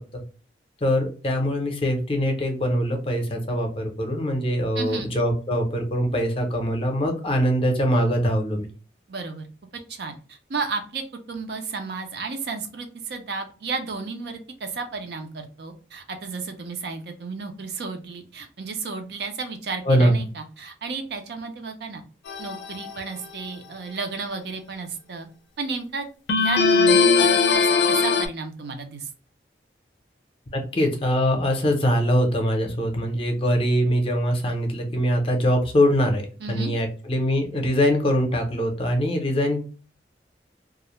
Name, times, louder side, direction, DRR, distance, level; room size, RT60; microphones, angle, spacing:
voice 1, 0.8-8.7 19.9-20.2 30.5-36.2 36.5-39.6, equal, 30° left, 3 dB, 0.5 m, -23 dB
voice 2, 4.8-5.1 9.1-9.5 9.9-11.0 11.3-22.0 22.4-25.3 25.6-26.1 26.4-29.1 36.4-36.7, right 4 dB, 70° right, 5 dB, 0.5 m, -33 dB
sound 1, 22.3-22.9 26.3-28.3, left 4 dB, 90° left, 0.4 m, -19 dB
2.4 x 2.1 x 2.9 m, 0.38 s
head